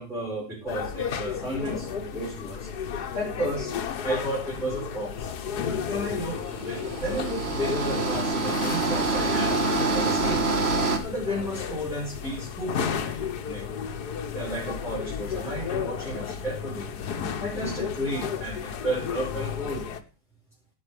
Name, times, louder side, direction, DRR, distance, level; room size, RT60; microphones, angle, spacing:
voice 1, 0.0-2.7 3.1-3.7 4.0-9.5 9.9-10.5 11.0-13.6 14.3-16.9 17.4-19.9, equal, ahead, -6 dB, 5.0 m, -33 dB
sound 1, 0.7-20.0, left 7 dB, 90° left, 1.6 m, -33 dB
sound 2, 6.4-11.0, right 3 dB, 40° right, 1.8 m, -26 dB
16.0 x 6.5 x 4.9 m, 0.34 s
omnidirectional pair, 1.7 m